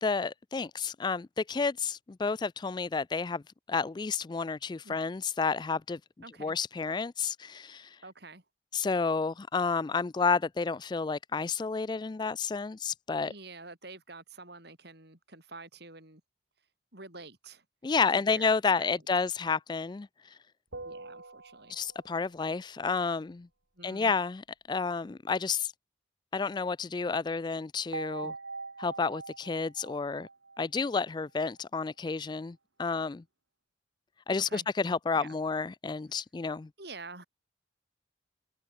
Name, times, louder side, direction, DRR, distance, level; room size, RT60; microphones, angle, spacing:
voice 1, 0.0-3.4 3.7-6.0 6.4-8.0 8.7-13.3 17.8-20.4 21.7-23.5 23.8-24.4 24.7-25.7 26.3-28.3 28.8-30.3 30.6-33.2 34.3-36.7, left 4 dB, 20° left, 0.3 m, -30 dB
voice 2, 6.2-6.5 8.0-8.4 13.2-16.2 16.9-17.6 18.1-19.0 20.8-21.8 23.8-24.1 28.2-28.4 34.4-34.7 35.1-35.4 36.8-37.2, right 3 dB, 55° right, 7.6 m, -48 dB
sound 1, 20.7-22.3 27.9-31.3, right 3 dB, 85° right, 4.1 m, -43 dB
head